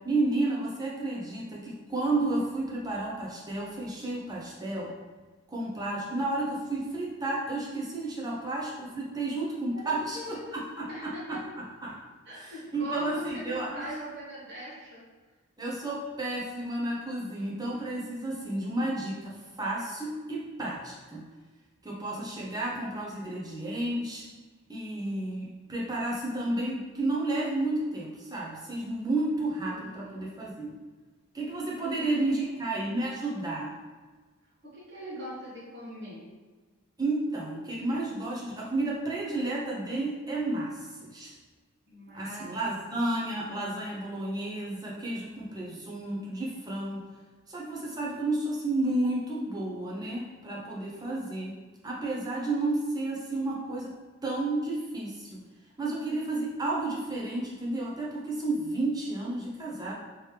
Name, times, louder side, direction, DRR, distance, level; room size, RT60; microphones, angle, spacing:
voice 1, 0.0-4.9 5.5-11.4 11.8-12.0 12.4-13.7 15.6-21.2 21.8-24.2 24.7-30.7 31.3-33.7 37.0-41.3 42.1-47.0 47.5-51.5 51.8-53.9 54.2-55.4 55.8-59.9, right 2 dB, 20° right, -4 dB, 0.6 m, -32 dB
voice 2, 9.7-10.6 10.9-11.4 12.2-15.0 29.7-30.3 31.9-32.7 34.6-36.3 41.9-42.9, equal, 50° right, -9 dB, 1.2 m, -41 dB
3.1 x 3.0 x 3.2 m, 1.3 s
head